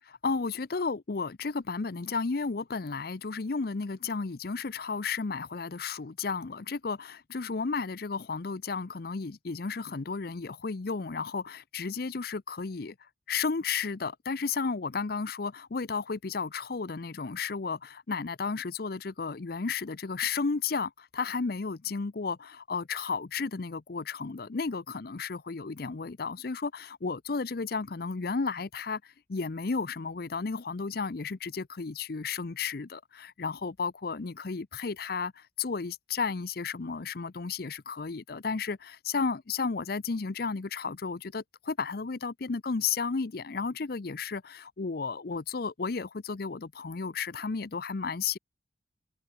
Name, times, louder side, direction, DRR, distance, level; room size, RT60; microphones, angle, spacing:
voice 1, 0.1-12.9 13.3-48.4, left 4 dB, 55° left, 0.6 m, -33 dB
head